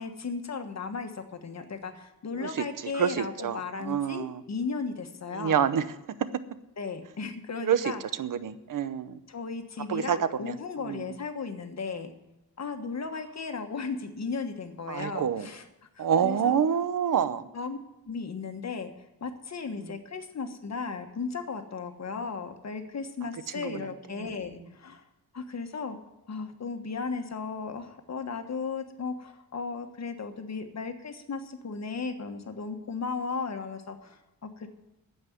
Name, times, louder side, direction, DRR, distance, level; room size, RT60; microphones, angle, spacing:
voice 1, 0.0-5.6 6.8-8.0 9.3-12.1 12.6-15.6 15.9-16.6 17.5-17.8 18.0-18.9 19.2-25.0 25.3-26.0 26.3-34.7, left 4 dB, 45° left, 6 dB, 1.4 m, -35 dB
voice 2, 2.9-4.4 5.4-5.8 7.6-7.9 8.2-9.2 9.9-10.5 10.8-11.1 14.9-15.5 16.0-17.5 23.6-23.8 24.2-24.3, right 8 dB, 60° right, 14 dB, 0.8 m, -27 dB
9.7 x 7.9 x 9.5 m, 0.92 s
wide cardioid pair, 125°, 37 cm